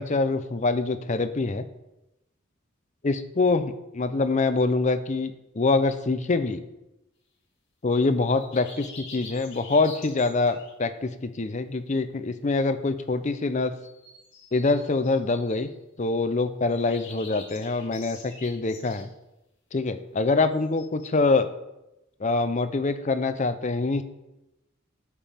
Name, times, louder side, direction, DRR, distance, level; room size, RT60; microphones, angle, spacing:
voice 1, 0.0-1.6 3.0-6.6 7.8-13.7 14.5-15.7 16.0-19.1 19.7-21.5 22.2-24.0, left 3 dB, 35° left, 10 dB, 0.6 m, -25 dB
sound 1, 8.3-10.7 13.8-15.7 16.7-19.0 20.8-21.1, left 3 dB, 55° left, 2.4 m, -46 dB
11.5 x 7.4 x 3.5 m, 0.93 s
head